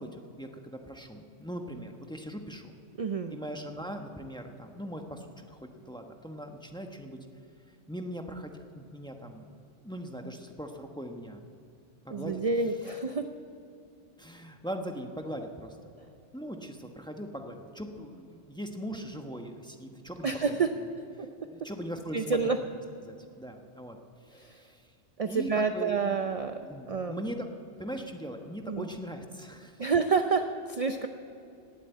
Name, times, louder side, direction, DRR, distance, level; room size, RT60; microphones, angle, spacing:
voice 1, 0.0-2.7 3.3-7.2 7.9-9.5 9.8-11.4 12.0-12.4 14.2-15.9 16.3-20.6 21.4-22.5 23.0-24.0 24.2-24.8 25.2-25.9 26.6-27.5 27.8-29.8, equal, 5° left, 4 dB, 1.0 m, -40 dB
voice 2, 3.0-3.4 12.1-13.2 20.2-20.7 21.2-21.3 22.1-22.6 24.3-24.5 25.2-26.6 26.9-27.3 28.7-28.9 29.8-31.1, right 5 dB, 45° right, 7 dB, 0.5 m, -28 dB
18.0 x 8.3 x 8.2 m, 2.7 s
omnidirectional pair, 1.3 m